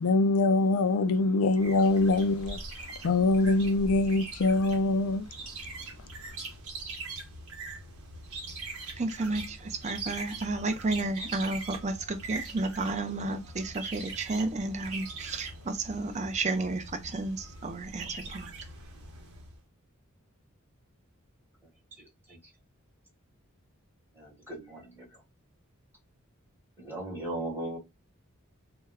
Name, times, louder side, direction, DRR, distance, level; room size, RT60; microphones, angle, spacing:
voice 1, 0.0-2.6 3.0-5.2, left 2 dB, 75° left, 0.4 m, -24 dB
sound 1, 1.6-19.6, right 3 dB, 85° right, 0.9 m, -42 dB
voice 2, 9.0-18.5, right 2 dB, 35° right, 0.5 m, -32 dB
voice 3, 22.0-22.4 24.1-25.2 26.8-27.8, right 1 dB, 10° right, 1.0 m, -38 dB
2.2 x 2.1 x 3.4 m
head